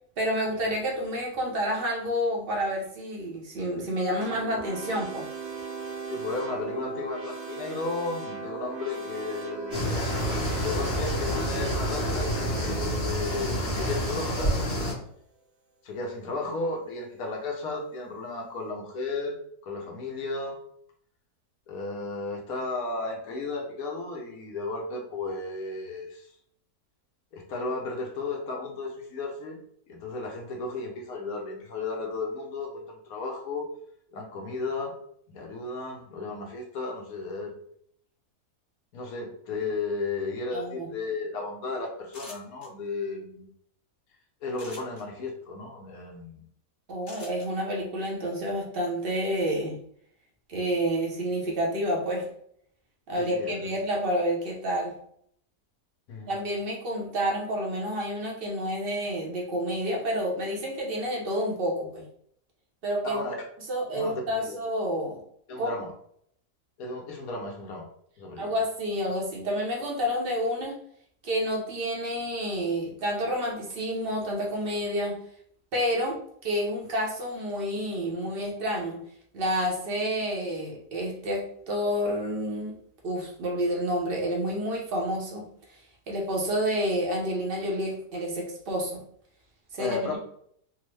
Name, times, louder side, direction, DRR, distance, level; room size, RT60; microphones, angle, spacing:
voice 1, 0.2-5.2 40.5-40.9 46.9-49.8 50.5-52.3 53.1-54.9 56.3-62.0 62.8-63.2 63.7-65.2 65.6-65.7 68.4-70.7 71.2-75.2 75.7-76.2 76.4-79.0 79.3-82.8 83.0-85.5 86.1-89.0 89.7-90.2, equal, 50° right, -1 dB, 0.7 m, -29 dB
sound 1, 4.2-14.7, right 5 dB, 80° right, 1.3 m, -38 dB
voice 2, 6.1-14.5 15.8-19.4 19.6-20.6 21.7-26.3 27.3-29.6 29.9-33.7 34.1-34.9 35.3-37.5 38.9-43.5 44.4-46.4 53.2-53.7 56.1-56.3 63.0-63.4 63.9-64.6 65.5-65.9 66.8-67.9 68.2-68.5 89.8-90.2, left 3 dB, 70° left, 1 dB, 1.1 m, -34 dB
sound 2, 9.7-14.9, equal, 20° left, 0.9 m, -28 dB
sound 3, 42.1-42.7 44.5-45.0 47.1-47.5, left 2 dB, 40° left, 1.4 m, -45 dB
3.5 x 2.0 x 3.1 m, 0.67 s
omnidirectional pair, 1.7 m